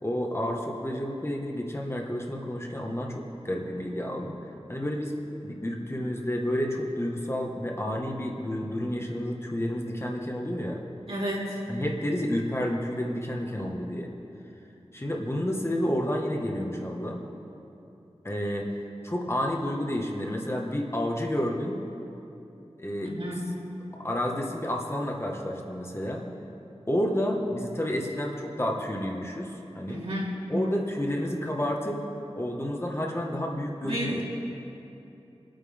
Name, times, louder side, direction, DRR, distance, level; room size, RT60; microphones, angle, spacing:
voice 1, 0.0-4.4 4.7-10.8 11.7-14.1 14.9-17.2 18.2-18.7 19.0-21.8 22.8-23.2 24.0-26.3 26.9-30.0 30.5-32.0 32.4-34.2, equal, 25° left, -1 dB, 1.6 m, -30 dB
voice 2, 11.1-11.6 23.0-23.4 29.9-30.4 33.8-34.2, equal, 65° right, -6 dB, 3.6 m, -32 dB
25.0 x 9.1 x 3.6 m, 2.9 s
wide cardioid pair, 65°, 11 cm